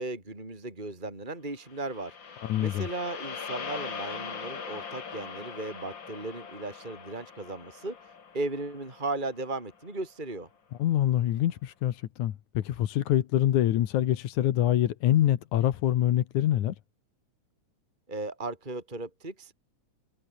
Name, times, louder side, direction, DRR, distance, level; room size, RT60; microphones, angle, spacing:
voice 1, 0.0-10.5 18.1-19.5, right 2 dB, 15° right, 4.3 m, -36 dB
sound 1, 1.7-10.0, left 6 dB, 40° left, 2.7 m, -41 dB
voice 2, 2.4-2.9 10.8-16.7, left 12 dB, 80° left, 2.7 m, -25 dB
omnidirectional pair, 3.4 m